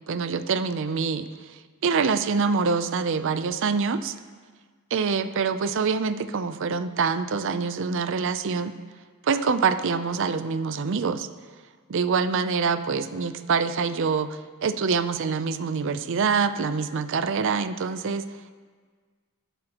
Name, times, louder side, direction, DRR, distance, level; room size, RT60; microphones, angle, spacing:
voice 1, 0.1-4.1 4.9-8.7 9.2-11.3 11.9-18.2, right 5 dB, 60° right, 12 dB, 0.5 m, -25 dB
19.5 x 7.7 x 3.0 m, 1.5 s
head